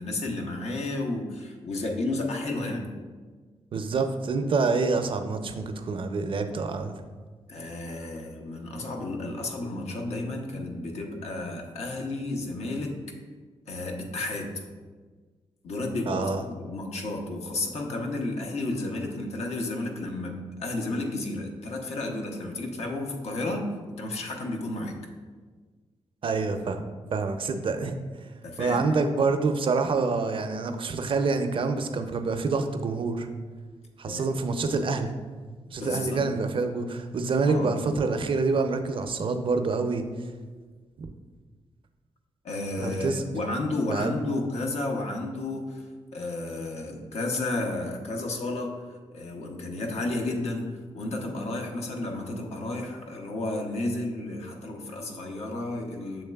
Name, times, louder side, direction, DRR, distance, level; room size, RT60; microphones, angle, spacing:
voice 1, 0.0-2.9 7.5-13.0 13.7-14.5 15.6-25.0 28.4-29.0 34.0-34.4 35.8-36.3 37.5-38.0 42.4-50.7 50.9-56.2, left 2 dB, 75° left, 2 dB, 0.7 m, -32 dB
voice 2, 3.7-6.9 16.1-16.4 26.2-26.8 27.1-27.9 28.6-33.3 34.0-35.1 35.7-40.0 41.0-41.1 42.8-43.2 43.9-44.2, right 4 dB, 50° right, 7 dB, 0.4 m, -27 dB
7.1 x 3.1 x 2.3 m, 1.4 s
cardioid pair, 60°, 11 cm